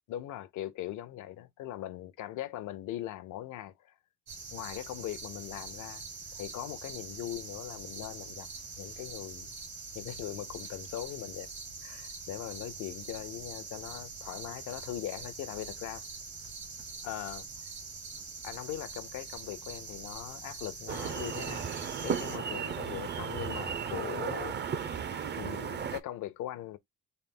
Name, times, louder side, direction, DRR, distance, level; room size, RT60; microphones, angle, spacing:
voice 1, 0.1-4.0 4.5-6.0 6.3-8.5 8.8-9.5 9.9-11.5 11.8-16.0 17.0-17.5 18.4-21.7 22.0-24.6 25.4-26.8, left 13 dB, 85° left, 0.6 m, -40 dB
sound 1, 4.3-22.4, right 4 dB, 70° right, 1.7 m, -44 dB
sound 2, 20.9-26.0, right 7 dB, 35° right, 0.5 m, -35 dB
4.0 x 2.1 x 3.7 m
cardioid pair, 90°, 30 cm